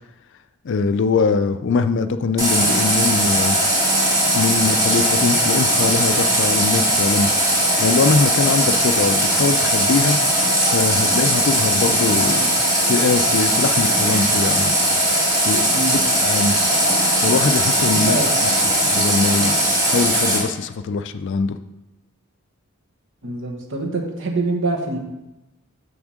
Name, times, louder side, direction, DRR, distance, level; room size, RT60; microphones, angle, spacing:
voice 1, 0.6-3.6 4.3-7.3 7.8-10.2 10.7-12.4 12.9-14.8 15.5-15.6 16.2-16.6 17.2-18.2 18.4-19.6 19.8-21.6, left 4 dB, 55° left, 11 dB, 0.4 m, -22 dB
Water tap faucet, 2.4-20.4, right 1 dB, 15° right, 2.3 m, -19 dB
voice 2, 12.2-12.5 15.7-16.0 17.9-18.3 23.2-25.0, right 2 dB, 60° right, 1 dB, 1.2 m, -25 dB
7.0 x 3.6 x 6.3 m, 0.96 s
head